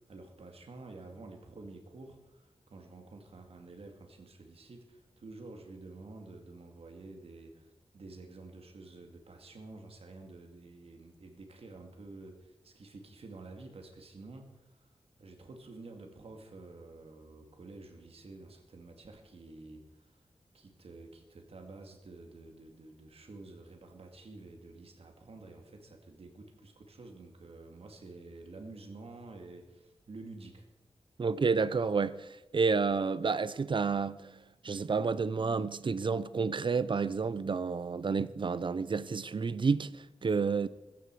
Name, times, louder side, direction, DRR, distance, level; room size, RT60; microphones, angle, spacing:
voice 1, 0.0-14.9 15.2-20.2 20.5-30.7, right 3 dB, 80° right, 2.4 m, -50 dB
voice 2, 31.2-32.3 32.5-34.4 34.6-40.7, right 5 dB, 55° right, 0.6 m, -30 dB
15.5 x 14.5 x 4.8 m
wide cardioid pair, 115°, 10 cm